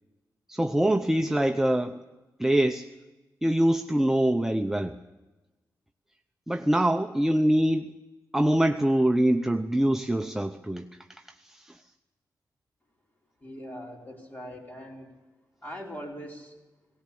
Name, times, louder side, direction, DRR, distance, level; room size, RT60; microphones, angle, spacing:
voice 1, 0.5-2.0 2.4-2.9 3.4-5.0 6.5-7.9 8.3-10.8 11.5-11.7, right 1 dB, 5° right, 5 dB, 0.7 m, -24 dB
voice 2, 13.4-15.1 15.6-16.5, equal, 25° left, -1 dB, 4.7 m, -41 dB
19.0 x 18.0 x 8.6 m, 1.1 s
wide cardioid pair, 100°, 7 cm